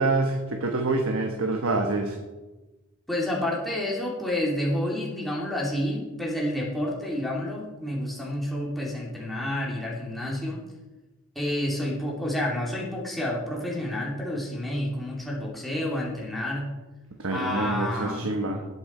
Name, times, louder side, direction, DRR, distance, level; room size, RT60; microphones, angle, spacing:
voice 1, 0.0-2.2 17.2-18.6, right 2 dB, 65° right, 3 dB, 1.2 m, -26 dB
voice 2, 3.1-10.6 11.3-16.7 17.3-18.3, left 1 dB, ahead, -5 dB, 2.7 m, -29 dB
18.0 x 8.8 x 4.3 m, 1.2 s
head